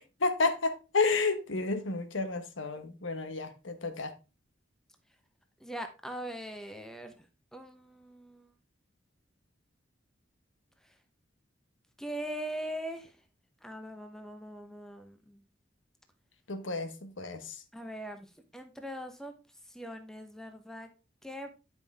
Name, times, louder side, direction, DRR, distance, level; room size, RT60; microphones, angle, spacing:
voice 1, 0.2-4.1 16.5-17.5, left 3 dB, 90° left, 1.2 m, -31 dB
voice 2, 5.6-7.2 7.5-8.5 12.0-13.2 13.6-15.4 17.7-19.3 19.7-20.9 21.2-21.5, equal, 5° left, 0.9 m, -41 dB
9.8 x 5.6 x 3.5 m
head